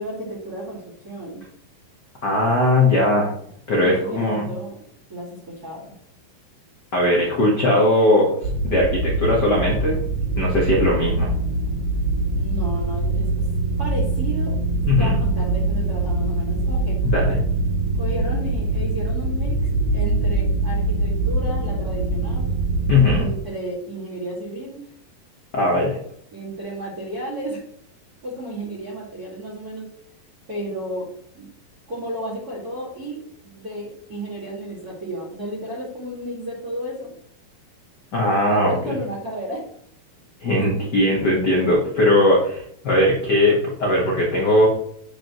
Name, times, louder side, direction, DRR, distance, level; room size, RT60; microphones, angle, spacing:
voice 1, 0.0-1.4 3.7-4.8 5.1-5.9 12.3-13.4 13.8-14.6 15.0-17.0 18.0-22.5 23.1-24.8 26.3-27.6 28.2-29.9 30.5-31.1 31.3-31.5 31.9-37.1 38.4-39.6 40.4-40.8, right 1 dB, 30° right, -7 dB, 2.0 m, -33 dB
voice 2, 2.2-3.3 3.7-4.5 6.9-8.3 8.6-10.0 10.4-11.3 14.9-15.1 17.0-17.4 22.9-23.3 25.5-26.0 38.1-38.9 40.4-44.7, left 1 dB, 80° left, -2 dB, 0.9 m, -19 dB
sound 1, 8.4-23.2, right 2 dB, 65° right, 3.6 m, -23 dB
9.5 x 5.3 x 3.0 m, 0.68 s
omnidirectional pair, 4.1 m